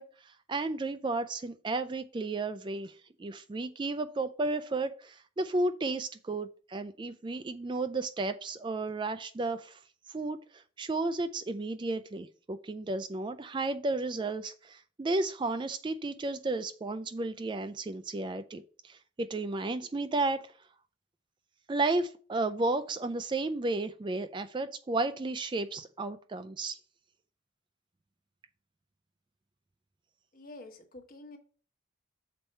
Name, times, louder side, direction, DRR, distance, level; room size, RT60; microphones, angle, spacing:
voice 1, 0.0-9.8 10.1-20.5 21.7-26.8, right 2 dB, 20° right, 0.3 m, -33 dB
voice 2, 30.3-31.4, left 2 dB, 40° left, 1.2 m, -48 dB
7.1 x 4.3 x 5.5 m
head